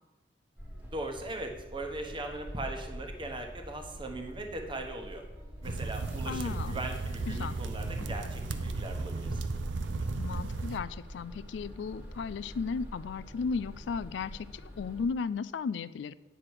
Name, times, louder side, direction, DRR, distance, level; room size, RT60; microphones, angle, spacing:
sound 1, 0.6-15.1, equal, 10° right, 1.4 m, -46 dB
voice 1, 0.9-5.2 5.6-9.4, right 2 dB, 30° right, 4 dB, 1.0 m, -39 dB
sound 2, 5.6-10.8, right 3 dB, 90° right, 0.6 m, -35 dB
voice 2, 6.3-6.8 7.3-7.6 10.2-16.1, left 5 dB, 70° left, 17 dB, 0.3 m, -35 dB
9.1 x 6.0 x 4.7 m, 1.2 s
head